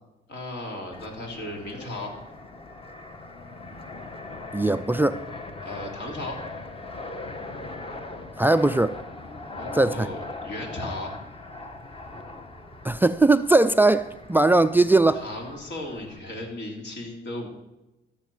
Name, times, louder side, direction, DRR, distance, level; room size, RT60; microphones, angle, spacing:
voice 1, 0.3-2.2 5.6-6.4 9.5-11.2 15.1-17.5, left 1 dB, 65° left, 1 dB, 3.5 m, -36 dB
Fixed-wing aircraft airplane, 0.9-16.2, left 2 dB, 25° left, 1.3 m, -40 dB
voice 2, 4.5-5.2 8.4-9.0 9.7-10.1 12.8-15.2, right 2 dB, 10° right, 14 dB, 0.4 m, -20 dB
13.5 x 6.9 x 7.2 m, 0.97 s
cardioid pair, 90°, 20 cm